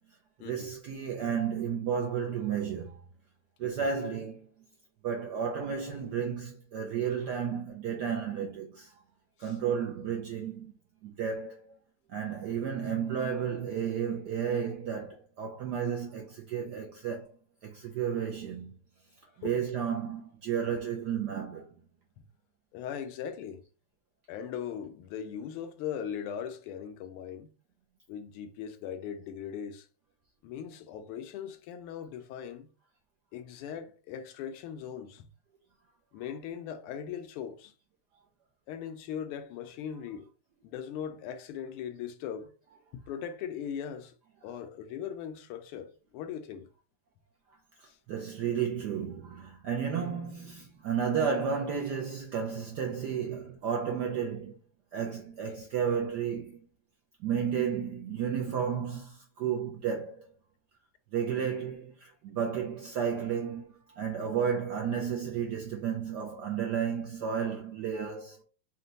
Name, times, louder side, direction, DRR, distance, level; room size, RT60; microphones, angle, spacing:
voice 1, 0.4-3.0 3.6-4.5 5.0-8.9 9.4-10.7 11.0-11.6 12.1-17.2 17.6-18.7 19.4-21.7 48.1-54.5 54.9-56.6 57.2-60.3 61.1-68.4, right 7 dB, 75° right, 0.9 m, -32 dB
voice 2, 22.7-23.6 24.3-27.5 28.1-29.9 30.4-32.7 33.3-35.3 36.1-37.7 38.7-40.3 40.6-42.5 42.9-44.1 44.4-46.7 47.9-48.0 55.4-55.5, left 8 dB, 80° left, 1.5 m, -39 dB
4.3 x 2.2 x 3.9 m
omnidirectional pair, 2.4 m